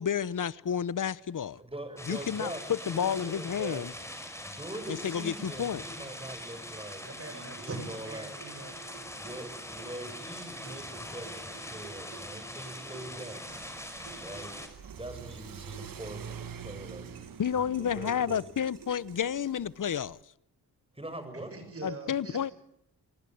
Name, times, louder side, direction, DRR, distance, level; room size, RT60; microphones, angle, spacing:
voice 1, 0.0-1.6 2.1-3.9 4.9-5.8 17.4-20.2 21.8-22.5, left 8 dB, 50° left, 1.0 m, -31 dB
voice 2, 1.6-3.9 4.4-8.3 9.2-13.5 14.2-14.6 15.0-18.5 20.9-21.5, right 1 dB, 15° right, 7.0 m, -43 dB
sound 1, 2.0-14.7, left 1 dB, 5° left, 5.5 m, -42 dB
voice 3, 7.0-9.3 21.3-22.5, right 3 dB, 35° right, 7.0 m, -43 dB
sound 2, 7.3-19.9, right 7 dB, 80° right, 5.3 m, -53 dB
Car / Accelerating revving vroom, 13.5-20.2, right 8 dB, 60° right, 1.4 m, -47 dB
29.5 x 20.0 x 9.4 m
cardioid pair, 90°, 39 cm